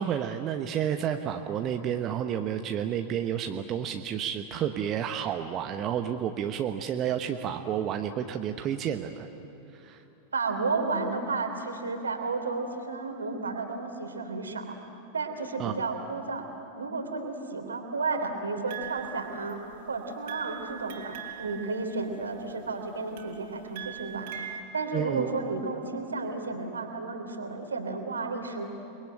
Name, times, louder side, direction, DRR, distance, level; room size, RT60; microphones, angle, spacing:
voice 1, 0.0-9.3 9.8-10.0 15.6-15.7 24.9-25.3, right 9 dB, 30° right, 6 dB, 1.0 m, -30 dB
voice 2, 10.3-14.8 15.1-16.4 16.8-19.6 19.9-24.3 24.7-28.7, right 3 dB, 75° right, 5 dB, 3.2 m, -32 dB
sound 1, 18.7-19.9 20.3-22.5 23.2-24.6, right 10 dB, 55° right, 3.2 m, -42 dB
29.5 x 22.0 x 8.9 m, 2.8 s
figure-of-eight pair, 90°, 0 cm